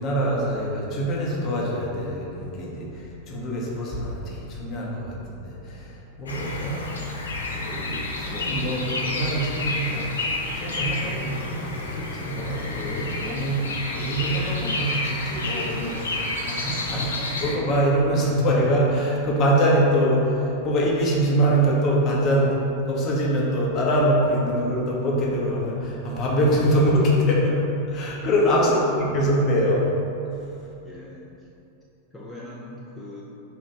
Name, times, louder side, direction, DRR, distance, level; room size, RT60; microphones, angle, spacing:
voice 1, 0.0-6.8 7.5-10.2 10.5-13.6 13.9-17.1 17.4-22.5 22.9-27.6 27.9-29.8, equal, 35° left, -4 dB, 0.8 m, -24 dB
sound 1, 6.3-17.6, left 2 dB, 70° left, 0.4 m, -30 dB
voice 2, 16.9-17.4 28.7-29.2 30.8-31.5 32.1-33.2, left 1 dB, 10° left, -7 dB, 0.4 m, -41 dB
3.4 x 2.5 x 4.4 m, 2.9 s
figure-of-eight pair, 90°, 0 cm